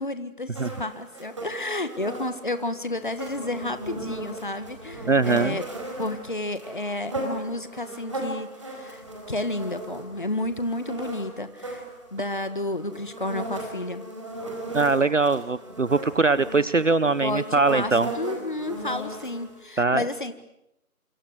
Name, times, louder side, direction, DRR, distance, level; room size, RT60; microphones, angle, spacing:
voice 1, 0.0-5.7 6.0-11.8 12.1-14.1 17.0-20.3, left 2 dB, 35° left, 11 dB, 1.6 m, -31 dB
sound 1, 0.5-19.6, right 1 dB, 20° right, 4.5 m, -37 dB
voice 2, 5.1-5.6 14.7-18.1 19.8-20.0, right 3 dB, 55° right, 16 dB, 1.0 m, -22 dB
28.0 x 26.5 x 8.0 m, 0.83 s
figure-of-eight pair, 175°, 44 cm